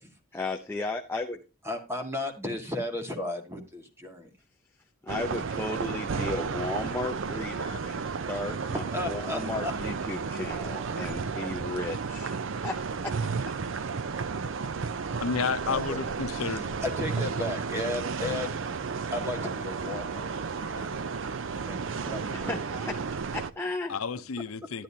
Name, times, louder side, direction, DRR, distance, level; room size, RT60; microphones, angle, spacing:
voice 1, 0.3-1.4 5.0-12.4 12.6-13.2 13.4-13.5 22.3-23.9, left 2 dB, 10° left, 0.6 m, -35 dB
voice 2, 1.6-4.3 8.7-9.7 14.8-16.0 16.3-18.6 19.1-20.9 21.7-22.6, left 2 dB, 10° right, 1.8 m, -35 dB
sound 1, 5.1-23.5, right 5 dB, 60° right, 0.5 m, -33 dB
voice 3, 15.2-16.8 23.9-24.8, left 5 dB, 85° left, 0.7 m, -31 dB
12.0 x 10.5 x 2.8 m
head